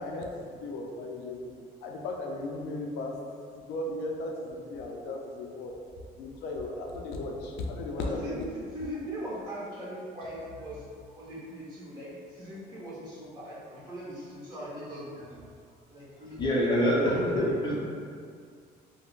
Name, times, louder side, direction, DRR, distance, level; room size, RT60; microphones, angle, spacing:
voice 1, 0.0-1.5 1.8-3.1 3.5-5.8 6.2-8.5, left 2 dB, 90° left, 0 dB, 0.4 m, -36 dB
voice 2, 8.0-8.3 8.7-10.8 11.1-15.4 15.9-17.3, equal, 25° right, -8 dB, 1.2 m, -40 dB
voice 3, 16.4-17.7, equal, 25° left, -5 dB, 0.6 m, -25 dB
3.6 x 2.1 x 2.4 m, 2.2 s
cardioid pair, 110°, 17 cm